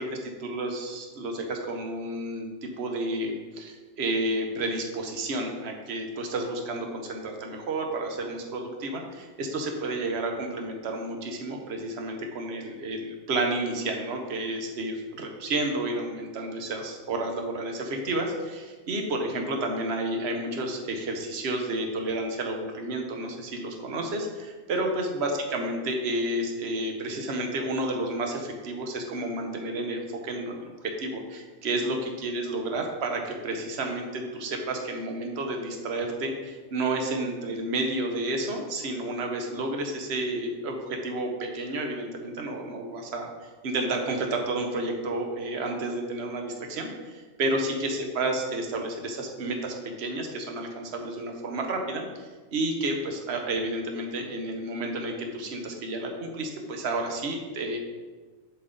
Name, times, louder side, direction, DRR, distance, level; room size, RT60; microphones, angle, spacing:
voice 1, 0.4-30.7 31.0-57.8, right 2 dB, 55° right, 3 dB, 1.2 m, -31 dB
7.4 x 6.7 x 3.9 m, 1.3 s
omnidirectional pair, 1.4 m